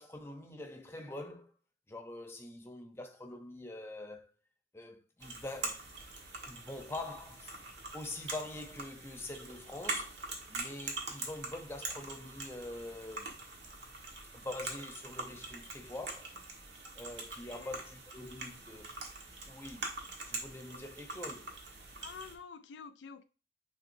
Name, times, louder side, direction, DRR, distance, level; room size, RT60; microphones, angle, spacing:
voice 1, 0.0-1.5 1.9-4.3 4.7-5.8 6.4-7.6 7.9-10.2 10.5-13.3 14.3-16.3 16.9-19.0 19.5-19.9 20.3-21.5, left 2 dB, 15° left, 0.8 m, -44 dB
sound 1, 5.2-22.3, right 3 dB, 75° right, 1.5 m, -43 dB
voice 2, 22.0-23.2, left 6 dB, 85° left, 0.4 m, -49 dB
9.6 x 3.6 x 2.7 m
head